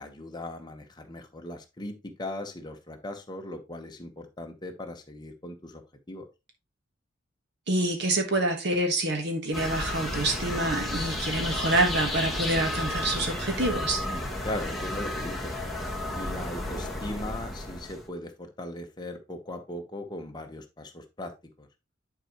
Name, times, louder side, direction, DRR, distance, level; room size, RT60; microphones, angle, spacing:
voice 1, 0.0-5.8 6.1-6.3 14.1-15.5 16.2-21.3 21.6-21.7, left 1 dB, 20° left, 5 dB, 1.1 m, -38 dB
voice 2, 7.7-14.0, right 1 dB, 55° right, 4 dB, 1.4 m, -27 dB
sound 1, 9.5-18.1, left 1 dB, ahead, 1.4 m, -32 dB
9.9 x 4.6 x 3.0 m, 0.25 s
head